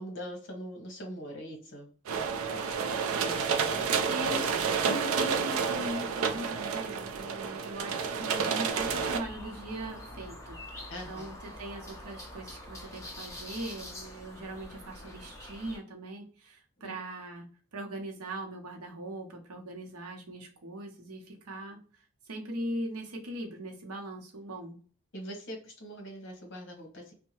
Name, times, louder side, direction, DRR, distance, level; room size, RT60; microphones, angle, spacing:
voice 1, 0.0-1.9 4.8-5.0 10.9-11.3 16.8-16.9 25.1-27.1, equal, 55° left, 2 dB, 1.0 m, -42 dB
sound 1, 2.1-9.2, right 6 dB, 70° right, 0.4 m, -30 dB
voice 2, 3.7-17.5 17.7-24.8, right 1 dB, 85° right, 2 dB, 0.8 m, -40 dB
Binaural Nightingale, 8.7-15.8, left 1 dB, 15° left, 0.5 m, -45 dB
2.7 x 2.2 x 2.9 m, 0.41 s
head